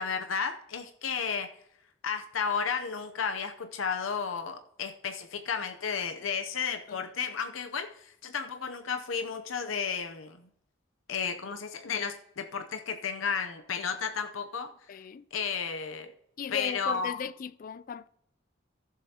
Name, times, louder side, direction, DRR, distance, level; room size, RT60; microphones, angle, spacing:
voice 1, 0.0-1.5 2.0-10.5 11.1-14.7 15.3-16.1 16.5-17.2, left 6 dB, 85° left, 0.7 m, -33 dB
voice 2, 14.9-15.2 16.4-18.1, left 7 dB, 45° left, 0.3 m, -37 dB
14.5 x 7.4 x 2.8 m
head